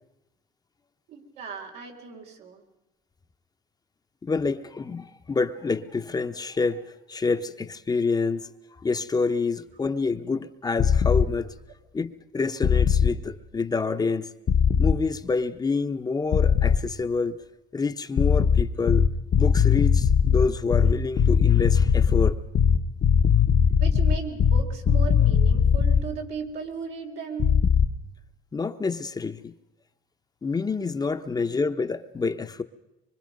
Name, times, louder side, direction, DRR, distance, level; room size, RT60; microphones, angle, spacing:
voice 1, 1.1-2.6 23.8-27.6, right 5 dB, 85° right, 3.9 m, -36 dB
voice 2, 4.2-6.8 7.1-8.5 8.8-11.5 11.9-14.3 14.8-17.4 17.7-19.1 19.4-22.4 28.5-29.5 30.4-32.6, left 4 dB, 25° left, 0.9 m, -27 dB
sound 1, 10.8-11.3 12.6-13.1 14.5-15.0 16.3-16.8 18.2-26.1 27.4-27.9, left 7 dB, 50° left, 1.1 m, -19 dB
24.5 x 24.5 x 5.3 m
cardioid pair, 110°, 17 cm